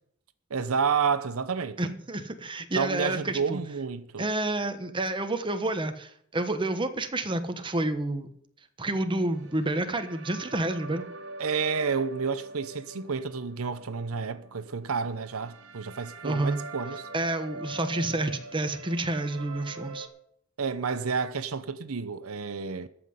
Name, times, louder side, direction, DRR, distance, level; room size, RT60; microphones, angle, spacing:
voice 1, 0.5-1.8 2.8-4.3 11.4-17.1 20.6-22.9, right 5 dB, 80° right, 0.8 m, -30 dB
voice 2, 1.8-3.6 4.2-8.3 8.8-11.1 16.2-16.6 17.1-20.1, right 2 dB, 25° right, 1.2 m, -29 dB
sound 1, 9.3-20.1, right 2 dB, 65° right, 2.1 m, -43 dB
14.0 x 5.8 x 9.6 m
head